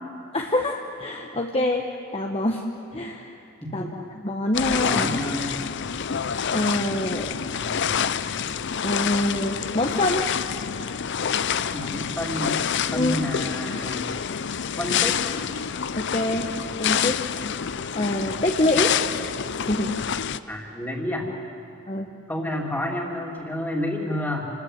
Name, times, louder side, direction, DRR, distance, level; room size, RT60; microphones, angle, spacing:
voice 1, 0.3-1.8 2.1-2.6 2.9-3.3 3.7-5.2 6.5-7.4 8.5-10.2 12.9-13.2 16.0-16.5 16.8-17.2 17.9-18.9 19.6-20.0 21.9-22.1, left 1 dB, 25° left, 2 dB, 1.1 m, -25 dB
sound 1, 4.5-20.4, left 7 dB, 55° left, 0.6 m, -27 dB
voice 2, 4.8-5.5 7.4-8.0 11.7-12.6 12.9-14.1 14.8-15.2 20.5-21.3 22.3-24.5, left 1 dB, 10° left, 0 dB, 3.0 m, -30 dB
28.0 x 20.5 x 8.2 m, 3.0 s
head